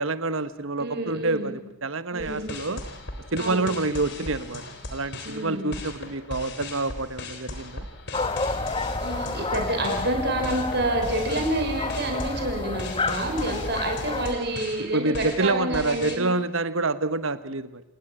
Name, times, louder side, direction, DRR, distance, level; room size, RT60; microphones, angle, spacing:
voice 1, 0.0-2.8 3.3-4.6 4.9-7.9 14.9-17.8, right 3 dB, 65° right, 13 dB, 1.2 m, -27 dB
voice 2, 0.8-1.5 2.1-2.6 3.4-3.7 5.2-5.7 8.6-8.7 9.0-16.3, right 1 dB, 50° right, 3 dB, 5.9 m, -28 dB
sound 1, 2.2-16.2, left 2 dB, 50° left, 3.7 m, -38 dB
sound 2, 8.1-14.3, left 3 dB, 25° left, 1.3 m, -30 dB
28.0 x 19.0 x 9.0 m, 0.89 s
head